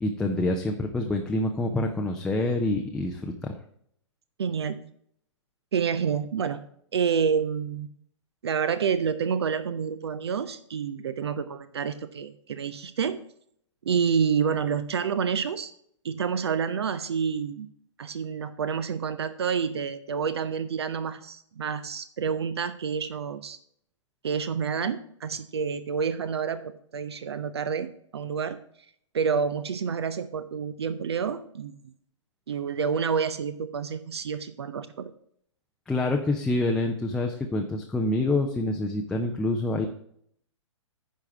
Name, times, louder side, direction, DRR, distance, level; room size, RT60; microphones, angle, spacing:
voice 1, 0.0-3.5 35.9-39.9, left 2 dB, 5° left, 1 dB, 0.6 m, -27 dB
voice 2, 4.4-4.8 5.7-6.6 6.9-7.9 8.4-13.2 13.8-15.7 16.0-17.7 18.0-23.6 24.2-28.6 29.1-31.8 32.5-35.1, right 6 dB, 55° right, 13 dB, 0.7 m, -28 dB
10.5 x 4.7 x 5.7 m, 0.66 s
figure-of-eight pair, 115°, 16 cm